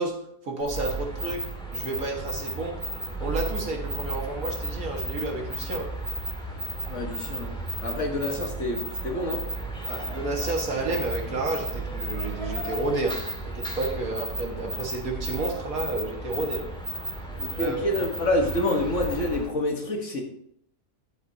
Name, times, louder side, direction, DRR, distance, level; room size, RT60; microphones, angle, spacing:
voice 1, 0.0-1.5 1.7-2.8 3.2-5.9 9.9-16.7 17.5-17.8, right 2 dB, 60° right, 0 dB, 2.0 m, -31 dB
sound 1, 0.6-19.5, right 1 dB, 5° left, 1.7 m, -34 dB
voice 2, 6.9-7.5 7.8-9.4 17.4-20.2, left 1 dB, 50° left, 2 dB, 1.6 m, -27 dB
12.0 x 7.7 x 2.8 m, 0.69 s
omnidirectional pair, 1.7 m